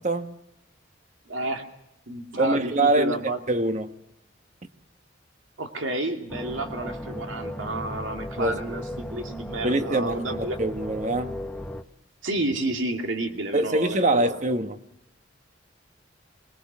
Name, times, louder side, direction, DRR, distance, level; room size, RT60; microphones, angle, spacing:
voice 1, 1.3-1.7 2.1-3.4 5.6-10.6 12.2-14.4, right 2 dB, 80° right, 2.6 m, -30 dB
voice 2, 2.4-3.2 3.5-3.9 8.4-8.6 9.6-11.3 13.5-14.8, right 2 dB, 40° right, 1.4 m, -24 dB
sound 1, 6.3-11.8, left 1 dB, 5° left, 0.9 m, -36 dB
25.0 x 20.5 x 6.2 m
head